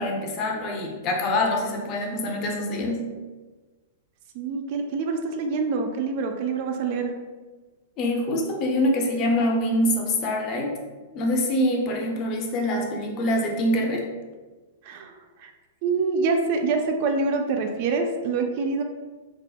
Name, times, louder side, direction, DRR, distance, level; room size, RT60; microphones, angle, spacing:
voice 1, 0.0-3.0 8.0-10.7 11.1-14.1, left 1 dB, 35° left, 1 dB, 0.5 m, -25 dB
voice 2, 4.3-7.1 14.8-15.5 15.8-18.8, right 4 dB, 50° right, 5 dB, 0.3 m, -26 dB
3.5 x 2.0 x 2.3 m, 1.3 s
hypercardioid pair, 140°, 0 cm